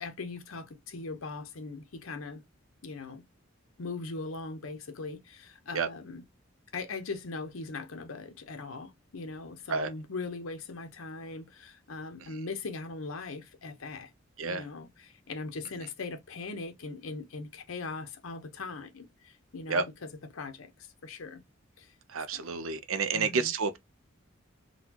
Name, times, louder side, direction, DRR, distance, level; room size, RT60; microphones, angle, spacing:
voice 1, 0.0-2.4 2.8-3.2 3.8-6.2 6.7-14.1 14.4-21.4 21.8-21.9 22.3-22.5 23.1-23.5, left 3 dB, 85° left, 0.8 m, -40 dB
voice 2, 22.1-23.8, right 4 dB, 85° right, 0.6 m, -29 dB
3.9 x 2.3 x 2.9 m
head